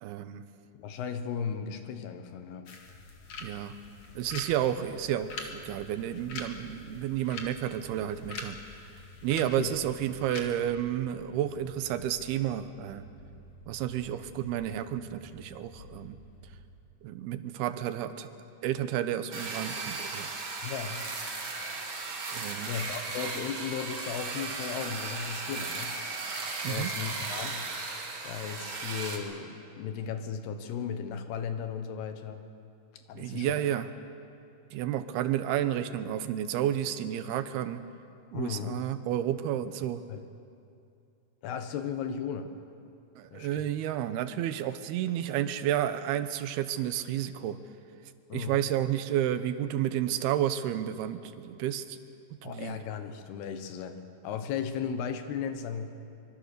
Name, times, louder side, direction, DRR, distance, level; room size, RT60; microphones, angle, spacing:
voice 1, 0.0-0.4 3.4-3.7 4.2-8.6 9.2-13.0 13.7-16.2 17.0-18.3 18.6-20.3 22.3-22.8 26.6-26.9 33.1-33.9 34.7-37.8 38.3-40.0 43.2-47.6 48.3-52.0 52.4-52.8, right 11 dB, 80° right, 11 dB, 2.8 m, -31 dB
voice 2, 0.8-2.7 9.4-9.7 20.6-21.1 22.7-26.0 26.7-27.6 28.2-32.4 33.1-33.7 38.3-38.8 40.1-40.3 41.4-42.5 43.3-43.6 48.3-48.6 52.4-55.9, left 7 dB, 85° left, 8 dB, 3.3 m, -36 dB
sound 1, 2.7-10.4, left 4 dB, 45° left, 2.1 m, -45 dB
sound 2, 2.8-16.8, left 3 dB, 65° left, 4.3 m, -52 dB
sound 3, 19.3-29.2, right 3 dB, 40° right, 2.5 m, -36 dB
24.5 x 23.0 x 6.7 m, 2.6 s
omnidirectional pair, 4.5 m